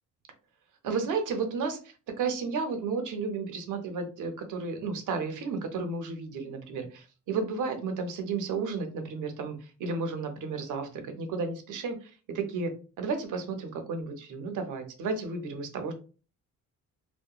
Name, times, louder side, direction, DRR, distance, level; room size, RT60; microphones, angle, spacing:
voice 1, 0.8-1.8 2.2-9.5 9.8-12.0 12.3-15.9, right 4 dB, 75° right, 6 dB, 0.6 m, -32 dB
2.8 x 2.1 x 2.3 m, 0.36 s
cardioid pair, 140°, 31 cm